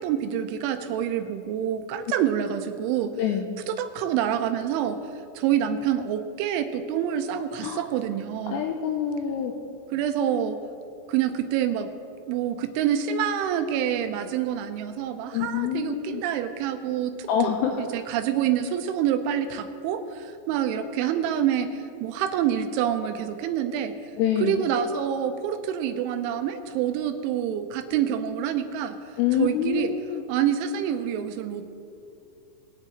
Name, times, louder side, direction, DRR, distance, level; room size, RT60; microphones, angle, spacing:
voice 1, 0.0-3.1 3.7-5.0 5.4-8.6 9.9-10.6 11.1-11.9 12.3-17.5 17.8-23.9 24.4-29.0 29.4-29.9 30.3-31.7, right 9 dB, 85° right, 8 dB, 3.0 m, -27 dB
voice 2, 3.2-3.5 7.6-7.9 8.5-9.5 15.3-16.2 17.3-17.8 24.2-24.6 29.2-30.2, left 8 dB, 85° left, 3 dB, 2.5 m, -26 dB
21.5 x 9.6 x 3.0 m, 2.6 s
omnidirectional pair, 5.6 m